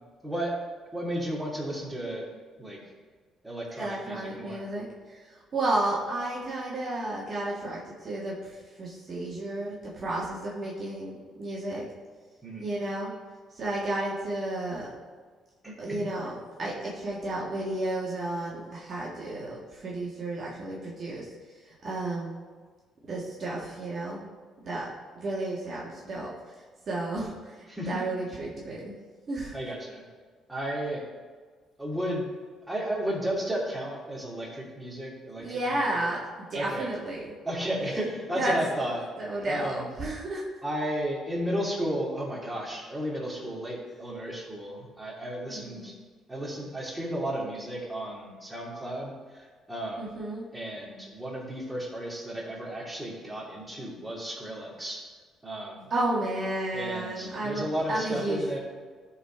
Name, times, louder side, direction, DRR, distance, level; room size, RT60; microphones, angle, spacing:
voice 1, 0.2-0.5 0.9-2.3 2.6-2.8 3.4-4.7 12.4-12.8 15.6-16.0 27.7-28.0 29.5-30.0 30.5-31.0 31.8-32.3 32.7-35.8 36.5-36.9 37.4-39.1 39.5-39.9 40.6-45.9 46.3-50.1 50.5-55.0 55.4-55.8 56.7-58.6, right 1 dB, 10° right, -4 dB, 2.8 m, -33 dB
voice 2, 3.8-11.8 12.6-13.1 13.5-14.9 15.8-22.4 23.1-24.3 24.6-24.9 25.2-26.3 26.9-28.9 29.3-29.6 35.4-36.2 36.5-37.3 38.4-38.5 39.2-40.4 45.5-45.9 50.0-50.4 55.9-58.6, right 2 dB, 50° right, -5 dB, 1.8 m, -32 dB
12.0 x 4.2 x 4.5 m, 1.5 s
supercardioid pair, 75°, 0 cm